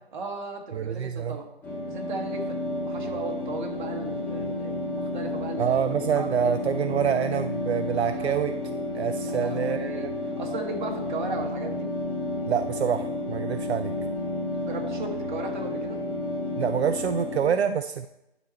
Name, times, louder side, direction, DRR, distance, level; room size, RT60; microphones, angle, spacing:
voice 1, 0.1-1.5 1.9-5.8 6.1-6.7 7.9-8.4 9.2-10.1 10.4-11.9 14.6-16.0, right 3 dB, 45° right, 2 dB, 1.5 m, -36 dB
voice 2, 0.7-1.4 5.6-8.5 8.9-10.1 12.5-13.9 16.6-18.1, right 8 dB, 80° right, 9 dB, 0.5 m, -26 dB
sound 1, 1.6-17.4, left 2 dB, 5° left, 0.6 m, -31 dB
10.0 x 4.1 x 4.4 m, 0.88 s
hypercardioid pair, 145°, 32 cm